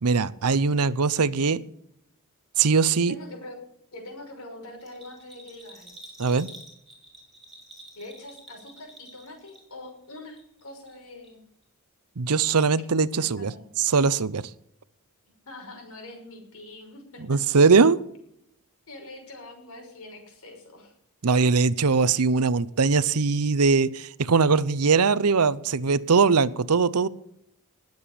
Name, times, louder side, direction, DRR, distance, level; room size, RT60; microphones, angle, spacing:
voice 1, 0.0-1.6 2.6-3.1 6.2-6.5 12.2-13.5 13.8-14.4 17.3-18.0 21.2-27.1, right 4 dB, 80° right, 18 dB, 0.7 m, -21 dB
voice 2, 3.1-3.6 3.9-6.0 8.0-11.4 13.1-13.6 15.4-17.4 18.9-20.9 21.2-21.5, left 2 dB, 70° left, 3 dB, 6.1 m, -44 dB
Bell, 4.8-9.9 10.2-11.0 11.2-11.3, right 1 dB, ahead, 5.2 m, -48 dB
20.0 x 7.9 x 7.1 m, 0.75 s
head